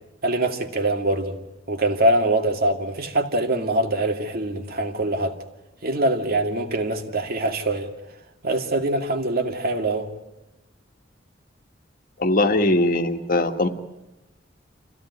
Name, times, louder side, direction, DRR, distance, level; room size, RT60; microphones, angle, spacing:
voice 1, 0.2-1.4 1.7-5.4 5.8-7.9 8.4-10.1, right 1 dB, 55° right, 2.3 m, -23 dB
voice 2, 12.2-13.7, left 1 dB, 50° left, 1.7 m, -20 dB
27.0 x 16.0 x 9.6 m
head